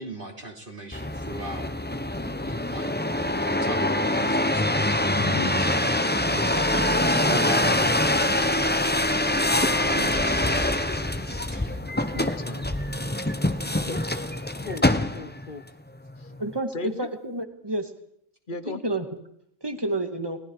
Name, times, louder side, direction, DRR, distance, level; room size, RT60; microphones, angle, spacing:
voice 1, 0.0-1.7 2.1-3.0 3.3-4.9 5.2-5.9 6.3-10.7 11.3-11.9 13.6-13.8, right 1 dB, 40° right, 1 dB, 3.6 m, -40 dB
sound 1, 0.9-15.5 16.1-16.6, left 1 dB, 10° left, 0.9 m, -24 dB
voice 2, 5.3-5.6 12.1-12.7 13.8-14.0 14.7-14.9 15.1-15.6 16.2-16.3 16.7-17.1 18.5-18.8, left 4 dB, 40° left, 13 dB, 1.3 m, -35 dB
voice 3, 16.4-17.9 18.7-19.1 19.6-20.4, right 1 dB, 20° right, 6 dB, 2.1 m, -29 dB
30.0 x 19.5 x 4.8 m, 0.70 s
omnidirectional pair, 1.3 m